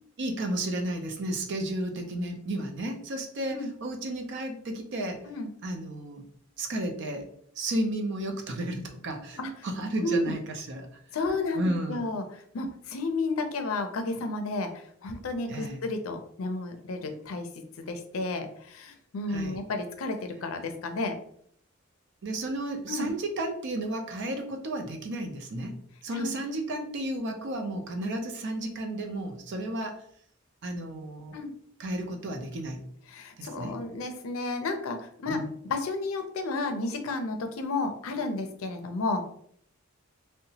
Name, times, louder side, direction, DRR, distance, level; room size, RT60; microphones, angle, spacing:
voice 1, 0.2-5.2 5.6-6.2 6.6-7.3 7.6-10.9 11.5-12.0 15.5-15.8 19.3-19.6 22.2-25.8 26.0-30.0 30.6-31.4 31.8-32.8 33.4-33.7 35.3-35.5, right 1 dB, 60° right, 4 dB, 0.5 m, -33 dB
voice 2, 10.0-10.3 11.1-17.5 17.8-21.2 22.9-23.1 26.1-26.3 31.3-31.5 33.1-35.4 35.7-39.3, left 3 dB, 85° left, 7 dB, 0.5 m, -32 dB
2.8 x 2.1 x 2.8 m, 0.66 s
head